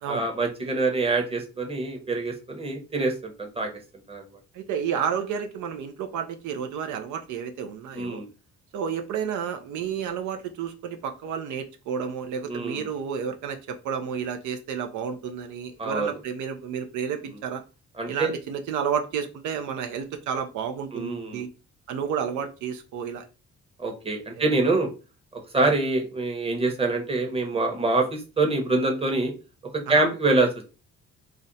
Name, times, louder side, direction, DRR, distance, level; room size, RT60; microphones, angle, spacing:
voice 1, 0.1-3.7 4.1-4.2 7.9-8.3 12.5-12.9 15.8-16.1 18.0-18.3 20.9-21.4 23.8-24.9 25.3-29.3 29.9-30.5, right 2 dB, 20° right, 3 dB, 0.8 m, -25 dB
voice 2, 4.5-8.2 8.7-17.6 18.1-21.5 21.9-23.3 24.4-24.5 25.6-25.7 29.9-30.0, right 7 dB, 80° right, 6 dB, 0.5 m, -31 dB
2.5 x 2.1 x 3.9 m, 0.32 s
cardioid pair, 90°, 30 cm